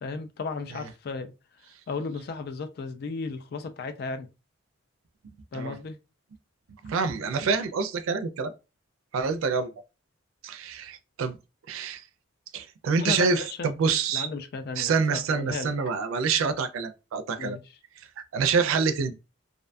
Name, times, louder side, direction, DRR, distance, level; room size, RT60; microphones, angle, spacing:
voice 1, 0.0-1.3 1.9-4.3 5.5-6.0 13.0-13.7 14.1-15.7 17.4-17.6, left 4 dB, 50° left, 0.3 m, -34 dB
voice 2, 6.8-8.5 9.1-9.7 10.4-11.4 11.7-12.0 12.5-14.3 14.8-17.6 18.3-19.1, right 5 dB, 90° right, 0.4 m, -26 dB
2.6 x 2.2 x 2.5 m
head